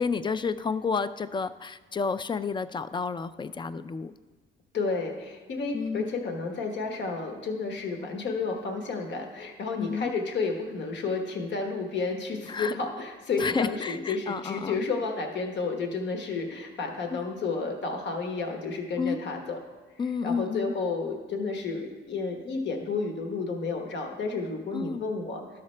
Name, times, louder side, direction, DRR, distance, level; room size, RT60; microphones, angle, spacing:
voice 1, 0.0-4.1 5.7-6.1 9.8-10.1 12.5-12.7 13.4-14.9 17.1-17.3 19.0-19.2 20.0-20.7 24.7-25.1, left 5 dB, 25° left, 13 dB, 0.3 m, -30 dB
voice 2, 4.7-19.6 20.2-25.4, left 4 dB, 65° left, 3 dB, 1.2 m, -31 dB
12.5 x 5.8 x 3.2 m, 1.3 s
cardioid pair, 90°, 20 cm